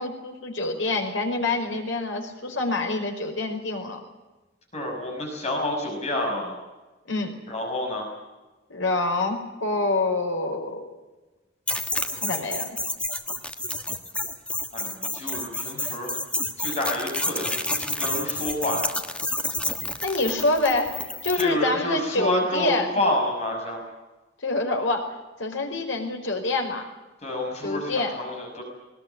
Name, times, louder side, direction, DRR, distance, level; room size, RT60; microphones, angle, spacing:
voice 1, 0.0-4.0 7.1-7.3 8.7-11.0 12.1-12.7 20.0-22.9 24.4-26.8 27.6-28.1, left 2 dB, 85° left, 3 dB, 5.0 m, -26 dB
voice 2, 4.7-6.6 7.5-8.1 14.7-16.1 16.6-18.9 21.3-23.8 27.2-28.6, left 1 dB, 35° left, 1 dB, 6.1 m, -28 dB
sound 1, 11.7-21.5, left 1 dB, 5° left, 1.4 m, -30 dB
20.5 x 20.0 x 9.5 m, 1.1 s
head